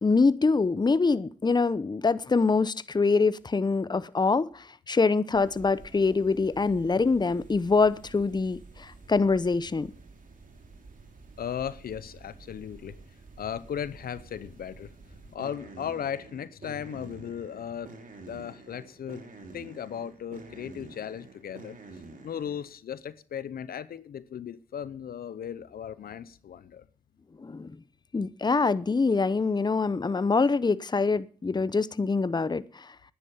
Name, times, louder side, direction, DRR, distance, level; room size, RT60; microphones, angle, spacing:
voice 1, 0.0-9.9 27.4-27.8 28.1-32.9, left 4 dB, 30° left, 0.7 m, -25 dB
sound 1, 5.3-22.7, right 3 dB, 60° right, 3.1 m, -49 dB
voice 2, 11.4-13.0 13.4-14.9 15.3-17.9 18.3-19.2 19.5-21.8 22.2-26.9, left 8 dB, 80° left, 0.7 m, -36 dB
10.5 x 10.0 x 7.2 m
cardioid pair, 55°, 15 cm